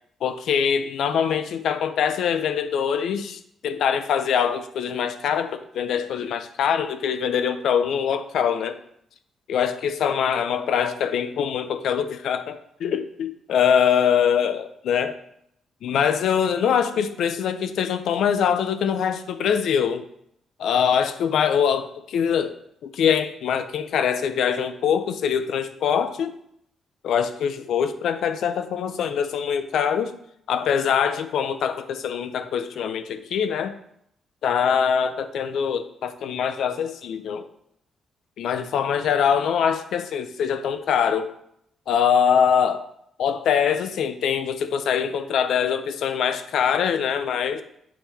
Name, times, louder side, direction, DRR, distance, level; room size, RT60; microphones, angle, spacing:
voice 1, 0.2-8.8 9.5-15.2 15.8-20.0 20.6-22.6 22.8-26.3 27.0-30.1 30.5-33.8 34.4-37.5 38.4-41.3 41.9-42.9 43.2-47.6, left 7 dB, 75° left, 10 dB, 0.5 m, -23 dB
7.3 x 3.3 x 4.4 m, 0.73 s
cardioid pair, 80°, 0 cm